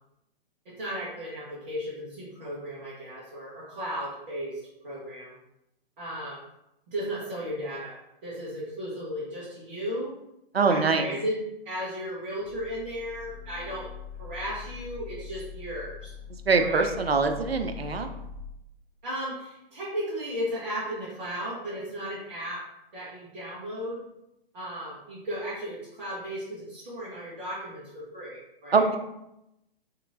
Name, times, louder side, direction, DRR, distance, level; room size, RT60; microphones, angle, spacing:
voice 1, 0.6-5.3 6.0-6.4 6.9-8.0 8.2-10.1 10.6-11.4 11.6-13.9 14.2-16.1 16.6-16.9 19.0-22.6 22.9-24.0 24.5-29.0, equal, 50° right, -9 dB, 1.1 m, -35 dB
voice 2, 10.5-11.1 16.5-18.1 28.7-29.0, right 4 dB, 90° right, 6 dB, 0.5 m, -23 dB
sound 1, 12.4-18.3, left 8 dB, 10° left, 0.4 m, -42 dB
3.0 x 2.8 x 2.6 m, 0.86 s
figure-of-eight pair, 120°, 29 cm